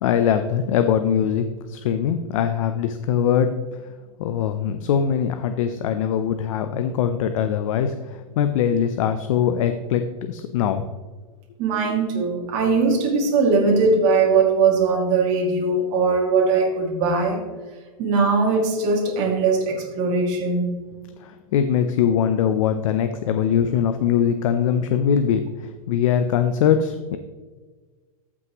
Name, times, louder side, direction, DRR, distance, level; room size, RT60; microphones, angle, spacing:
voice 1, 0.0-3.5 4.2-10.0 10.3-10.9 21.2-27.2, left 8 dB, 60° left, 8 dB, 0.7 m, -22 dB
voice 2, 11.6-17.4 18.0-20.7, right 4 dB, 40° right, -2 dB, 2.2 m, -20 dB
13.5 x 6.1 x 3.0 m, 1.4 s
supercardioid pair, 150°, 19 cm